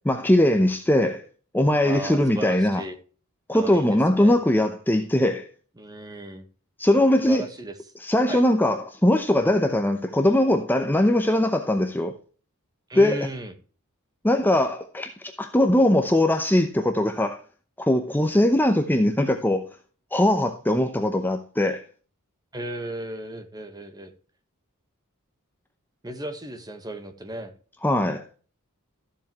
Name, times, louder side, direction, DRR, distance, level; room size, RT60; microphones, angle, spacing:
voice 1, 0.0-1.2 1.5-2.8 3.5-5.5 6.8-7.4 8.0-12.1 13.0-13.3 14.2-17.4 17.8-19.7 20.1-21.8 27.8-28.2, left 1 dB, 10° left, 0.7 m, -21 dB
voice 2, 1.8-2.9 3.5-4.3 5.8-6.5 7.2-7.8 8.3-8.4 12.9-13.5 22.5-24.1 26.0-27.5, right 1 dB, 20° right, 1.3 m, -35 dB
13.5 x 7.5 x 3.1 m
head